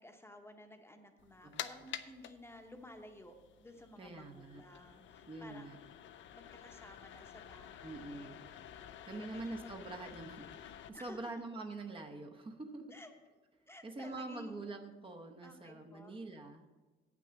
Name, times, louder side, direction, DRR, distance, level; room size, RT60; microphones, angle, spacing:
voice 1, 0.0-5.7 6.3-10.1 10.9-11.3 12.9-13.1 13.7-14.6 15.4-16.1, left 1 dB, 10° left, 5 dB, 0.9 m, -55 dB
sound 1, 1.2-10.9, left 10 dB, 75° left, 0.6 m, -50 dB
voice 2, 4.0-4.6 5.3-5.8 7.8-8.5 9.0-13.0 13.8-16.6, right 2 dB, 25° right, 2 dB, 0.9 m, -45 dB
8.4 x 6.1 x 6.9 m, 1.3 s
cardioid pair, 110°, 20 cm